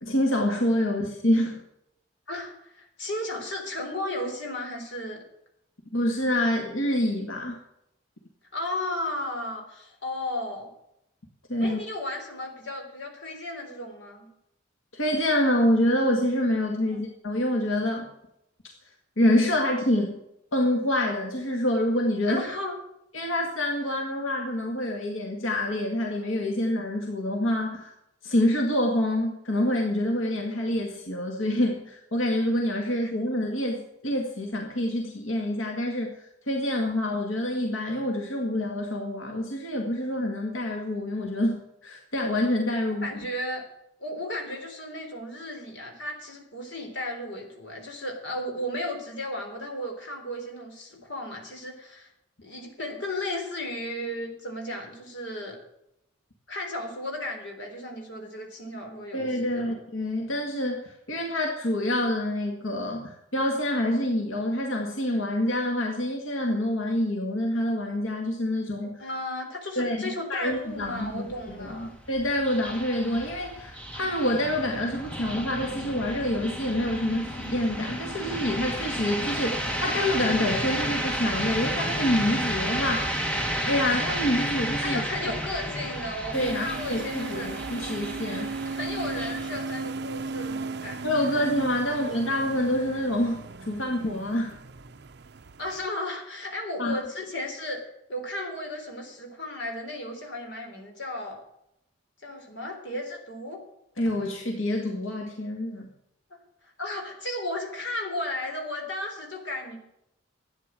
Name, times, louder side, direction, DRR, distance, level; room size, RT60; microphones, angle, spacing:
voice 1, 0.0-1.6 5.9-7.6 11.5-11.8 14.9-18.1 19.2-20.2 20.5-22.4 23.1-27.9 28.2-43.1 59.1-69.1 69.8-83.2 83.6-85.0 86.3-88.5 91.0-94.5 96.8-97.0 104.0-105.9, left 1 dB, 90° left, 2 dB, 2.0 m, -27 dB
voice 2, 2.3-5.2 8.5-10.7 11.6-14.3 16.9-17.0 22.3-22.8 32.9-33.1 43.0-43.6 44.0-52.1 52.4-55.6 56.5-59.7 69.0-71.9 84.8-87.5 88.7-91.1 92.0-92.1 95.6-97.8 98.1-101.4 102.2-103.6 106.3-109.8, left 1 dB, 60° left, 2 dB, 3.9 m, -34 dB
sound 1, 70.5-89.5, right 1 dB, 5° left, 1.7 m, -32 dB
sound 2, 86.3-95.9, right 3 dB, 55° right, 0.6 m, -36 dB
13.0 x 9.3 x 7.5 m, 0.82 s
head